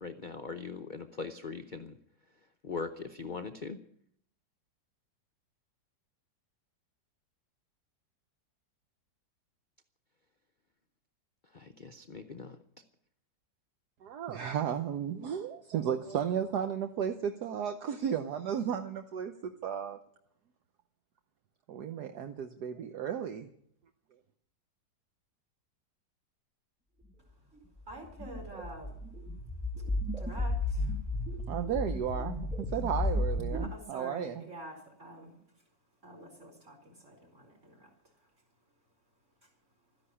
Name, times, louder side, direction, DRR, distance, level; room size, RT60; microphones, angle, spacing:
voice 1, 0.0-2.0 2.6-3.8 11.5-12.6, left 4 dB, 50° left, 7 dB, 0.6 m, -40 dB
voice 2, 14.0-20.0 21.7-23.5 31.5-32.5 32.7-34.4, right 8 dB, 65° right, 7 dB, 1.4 m, -34 dB
sound 1, 27.9-33.7, left 2 dB, ahead, 1.2 m, -33 dB
voice 3, 27.9-29.0 29.8-29.9 30.2-31.3 33.5-35.6 36.0-38.3 39.4-39.5, right 1 dB, 40° right, 1 dB, 4.9 m, -48 dB
13.5 x 10.5 x 10.0 m, 0.68 s
omnidirectional pair, 2.0 m